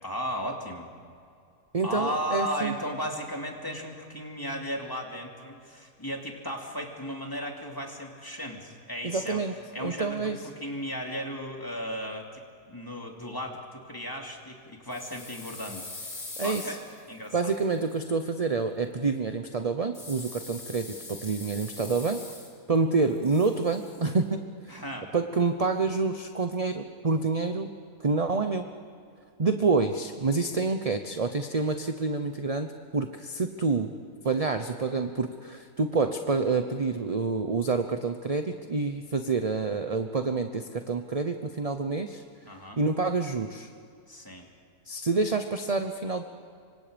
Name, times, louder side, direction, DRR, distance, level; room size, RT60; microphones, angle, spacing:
voice 1, 0.0-0.9 1.8-9.4 9.7-12.4 12.7-16.1 16.4-16.8 17.1-17.5 24.7-25.1 42.4-42.8 44.1-44.5, equal, 15° left, 1 dB, 2.7 m, -35 dB
voice 2, 1.7-2.8 9.0-9.5 9.8-10.4 16.4-16.8 17.3-22.2 22.7-24.8 25.1-27.7 28.0-28.6 29.4-33.9 34.2-42.2 42.8-43.7 44.9-46.2, right 4 dB, 30° right, 7 dB, 0.8 m, -28 dB
sound 1, 14.9-18.0 19.9-22.8 23.0-24.1, left 2 dB, 70° left, 3.6 m, -43 dB
27.0 x 24.5 x 5.2 m, 2.4 s
omnidirectional pair, 1.5 m